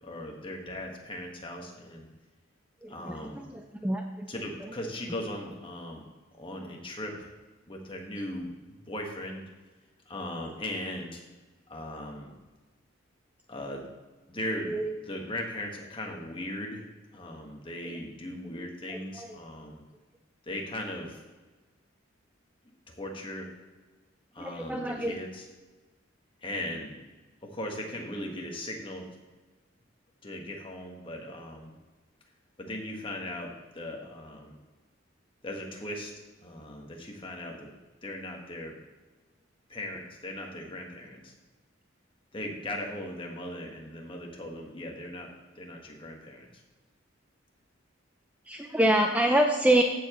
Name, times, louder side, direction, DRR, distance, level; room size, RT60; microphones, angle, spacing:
voice 1, 0.0-2.1 2.9-3.5 4.3-6.0 6.3-7.3 7.7-9.4 10.1-11.2 11.7-12.3 13.5-13.9 14.3-16.8 17.1-19.8 20.4-21.2 22.9-23.5 24.3-25.5 26.4-27.0 27.4-29.1 30.2-31.7 32.6-34.6 35.4-36.1 36.4-37.7 38.0-38.8 39.7-41.3 42.3-46.5, left 1 dB, 25° left, 1 dB, 1.5 m, -38 dB
voice 2, 2.8-4.3 14.6-14.9 17.8-17.9 18.9-19.3 24.4-25.1 48.5-49.8, right 1 dB, 5° right, 3 dB, 0.5 m, -26 dB
15.0 x 7.0 x 3.1 m, 1.3 s
head